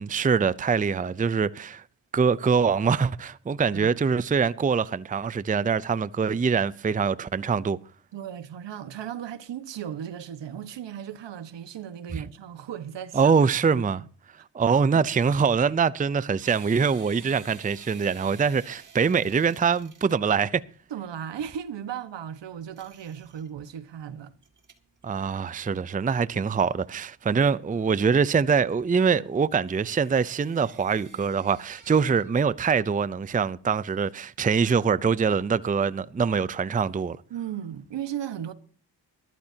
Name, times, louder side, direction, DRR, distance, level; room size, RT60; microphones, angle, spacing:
voice 1, 0.0-1.8 2.1-7.8 12.1-12.2 13.1-14.0 14.5-20.6 25.0-37.2, right 6 dB, 20° right, 0.5 m, -24 dB
voice 2, 8.1-13.8 14.9-15.0 20.9-24.3 37.3-38.5, right 9 dB, 75° right, 1.4 m, -36 dB
sound 1, 16.4-32.5 32.8-33.7, right 5 dB, 45° right, 2.4 m, -52 dB
20.5 x 13.5 x 2.8 m
cardioid pair, 75°, 44 cm